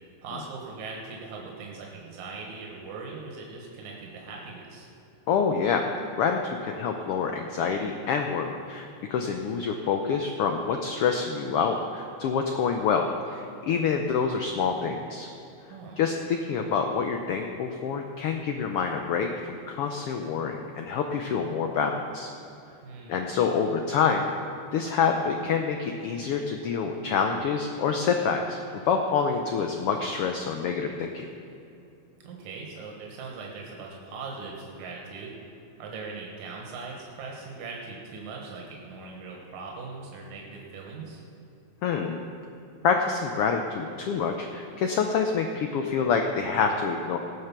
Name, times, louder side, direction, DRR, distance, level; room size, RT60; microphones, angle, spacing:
voice 1, 0.2-4.9 15.7-16.0 22.8-23.2 32.2-35.3 35.8-41.2, right 4 dB, 80° right, -1 dB, 2.8 m, -40 dB
voice 2, 5.3-5.8 6.2-15.3 16.0-22.3 23.1-24.3 24.7-28.6 28.8-31.3 41.8-42.2 42.8-47.2, left 6 dB, 90° left, 4 dB, 1.2 m, -27 dB
18.0 x 6.6 x 6.0 m, 2.7 s
omnidirectional pair, 3.4 m